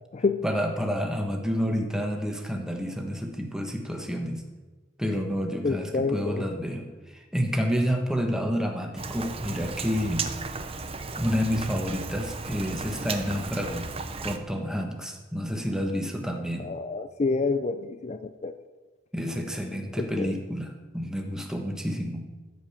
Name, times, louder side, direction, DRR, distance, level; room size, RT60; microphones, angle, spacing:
voice 1, 0.4-4.4 5.0-10.3 11.2-13.9 14.2-16.7 19.1-22.3, equal, 5° right, 3 dB, 1.2 m, -29 dB
voice 2, 5.6-6.4 16.6-18.5 20.0-20.3, left 4 dB, 35° left, 10 dB, 0.4 m, -28 dB
Rain, 9.0-14.4, right 4 dB, 30° right, 0.7 m, -35 dB
14.0 x 5.2 x 7.4 m, 1.2 s
head